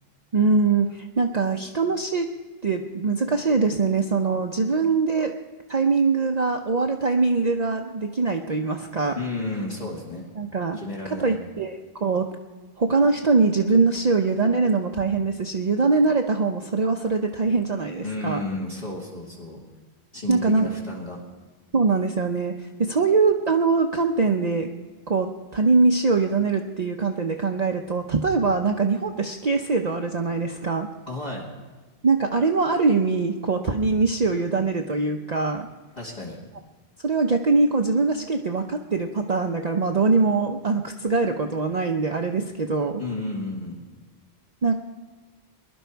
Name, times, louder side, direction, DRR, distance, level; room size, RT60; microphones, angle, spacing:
voice 1, 0.3-2.3 2.6-5.3 5.7-9.2 10.4-10.8 11.0-12.3 12.8-18.5 20.3-20.7 21.7-24.7 25.1-30.9 32.0-35.7 37.0-43.0 44.6-44.7, right 4 dB, 45° right, 3 dB, 0.8 m, -22 dB
voice 2, 9.2-10.3 10.7-11.4 18.0-19.6 20.1-21.2 31.1-31.5 36.0-36.4 43.0-43.8, left 2 dB, 45° left, -4 dB, 2.3 m, -32 dB
20.0 x 11.5 x 4.6 m, 1.4 s
omnidirectional pair, 1.1 m